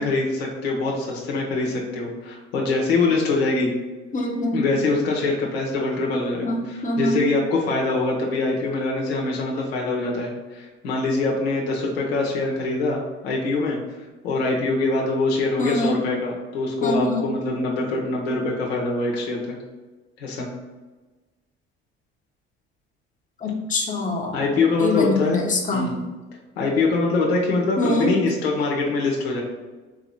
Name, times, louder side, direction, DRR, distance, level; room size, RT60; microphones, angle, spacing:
voice 1, 0.0-3.7 4.5-13.8 14.2-19.6 20.2-20.5 24.3-25.4 25.7-25.9 26.6-29.4, left 3 dB, 80° left, -2 dB, 1.0 m, -24 dB
voice 2, 4.1-4.7 6.4-7.3 15.6-16.0 16.8-17.3 23.4-24.4 24.8-25.9 27.8-28.1, left 2 dB, 25° left, 0 dB, 1.1 m, -24 dB
4.5 x 2.9 x 4.0 m, 1.2 s
hypercardioid pair, 65°, 30 cm